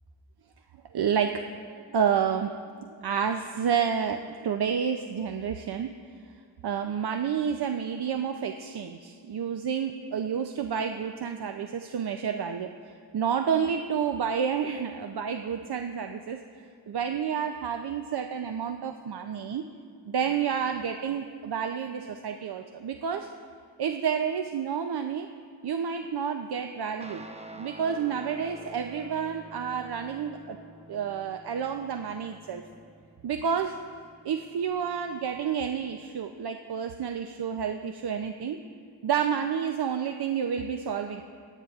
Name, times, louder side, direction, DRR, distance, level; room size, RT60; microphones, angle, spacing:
voice 1, 0.9-1.5 1.7-5.9 6.6-12.7 13.1-16.4 16.9-19.6 20.1-23.3 23.8-25.3 25.6-27.2 27.6-30.6 30.9-32.6 33.2-33.7 34.2-38.6 39.0-41.2, right 7 dB, 70° right, 6 dB, 0.5 m, -30 dB
Guitar, 27.0-35.8, right 2 dB, 15° right, 0.7 m, -49 dB
27.0 x 9.1 x 2.4 m, 2.3 s
wide cardioid pair, 95°, 41 cm